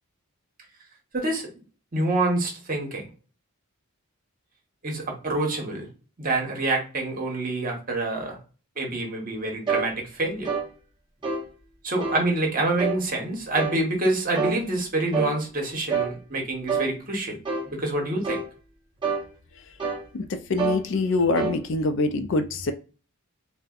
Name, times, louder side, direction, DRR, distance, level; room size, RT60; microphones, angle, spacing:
voice 1, 1.1-1.5 1.9-3.1 4.8-5.9 6.2-8.4 8.8-10.5 11.8-17.4 17.6-18.4, right 2 dB, 40° right, 1 dB, 1.0 m, -27 dB
sound 1, 9.7-9.9 10.4-10.7 11.2-11.5 12.0-12.2 12.8-13.0 13.6-13.8 14.3-14.6 15.1-15.4 15.9-16.1 16.7-16.9 17.4-17.7 18.2-18.5 19.0-19.3 19.8-20.1 20.6-20.8 21.4-21.6, right 5 dB, 20° right, 0.7 m, -27 dB
voice 2, 20.1-22.7, left 3 dB, 55° left, 8 dB, 0.4 m, -25 dB
4.1 x 2.1 x 2.4 m, 0.35 s
head